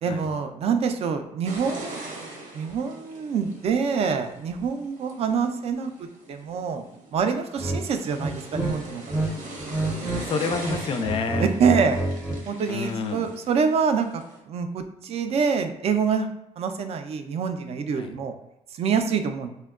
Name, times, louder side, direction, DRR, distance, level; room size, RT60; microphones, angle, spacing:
voice 1, 0.0-2.0 2.5-5.9 6.3-6.8 7.1-9.0 11.4-12.0 12.5-14.1 14.5-16.3 16.6-18.3 18.7-19.5, right 6 dB, 50° right, 7 dB, 0.4 m, -25 dB
sound 1, 1.4-14.4, right 2 dB, 85° right, 0.9 m, -41 dB
sound 2, 7.6-7.8 8.2-9.3 9.6-10.2 10.5-12.4, right 2 dB, 10° right, 0.6 m, -28 dB
voice 2, 10.2-11.5 12.7-13.3 17.9-18.2, left 5 dB, 45° left, 7 dB, 0.3 m, -29 dB
4.3 x 2.1 x 2.3 m, 0.86 s
cardioid pair, 125°, 13 cm